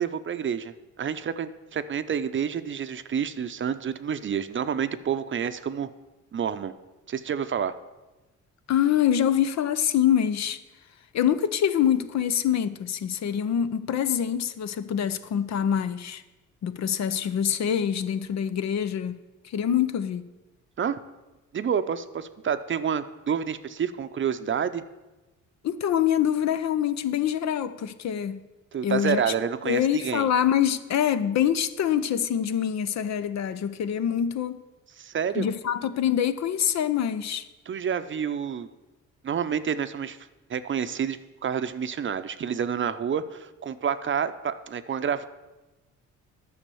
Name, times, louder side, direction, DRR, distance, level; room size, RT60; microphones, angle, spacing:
voice 1, 0.0-5.9 6.3-6.7 7.1-7.7 20.8-21.0 21.5-24.8 28.7-30.3 35.0-35.5 37.7-38.7 39.2-40.2 40.5-45.3, right 7 dB, 40° right, 0.6 m, -29 dB
voice 2, 8.7-10.6 11.1-16.2 16.6-19.2 19.4-20.3 25.6-28.4 28.8-29.2 29.6-34.6 35.4-37.4, left 9 dB, 60° left, 0.7 m, -25 dB
10.5 x 6.5 x 7.0 m
cardioid pair, 90°, 30 cm